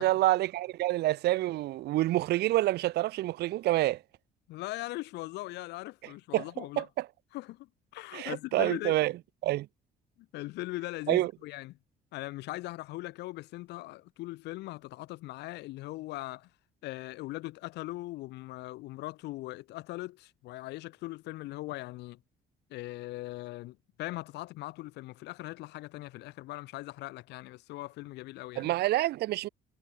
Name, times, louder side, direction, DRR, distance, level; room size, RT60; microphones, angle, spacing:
voice 1, 0.0-4.0 6.3-6.4 6.8-7.1 8.1-9.1 9.4-9.7 11.1-11.3 28.6-29.5, right 16 dB, 75° right, 1.5 m, -27 dB
voice 2, 4.5-6.9 7.3-7.7 7.9-9.0 10.3-11.7 12.1-16.5 16.8-22.2 22.7-28.7, left 18 dB, 85° left, 3.2 m, -40 dB
cardioid pair, 110°, 17 cm